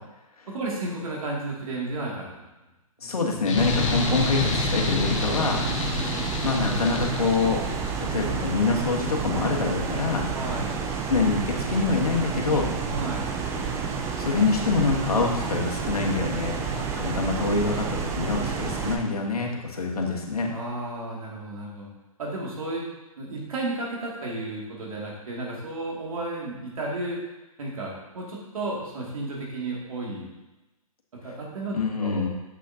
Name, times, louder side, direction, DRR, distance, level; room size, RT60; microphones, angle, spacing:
voice 1, 0.5-2.3 3.0-3.1 5.6-6.3 10.3-10.8 12.9-13.3 20.5-21.9 22.2-22.8 23.2-27.2 27.6-30.3 31.1-32.3, right 2 dB, 70° right, -4 dB, 2.5 m, -33 dB
voice 2, 3.0-5.6 6.4-7.6 8.0-10.3 11.1-12.7 14.2-20.5 31.7-32.3, left 4 dB, 80° left, 0 dB, 1.5 m, -25 dB
sound 1, 3.4-7.9, left 5 dB, 55° left, 1.0 m, -28 dB
sound 2, 3.6-18.9, right 6 dB, 15° right, 0.5 m, -30 dB
7.6 x 6.2 x 2.9 m, 1.0 s
hypercardioid pair, 135°, 19 cm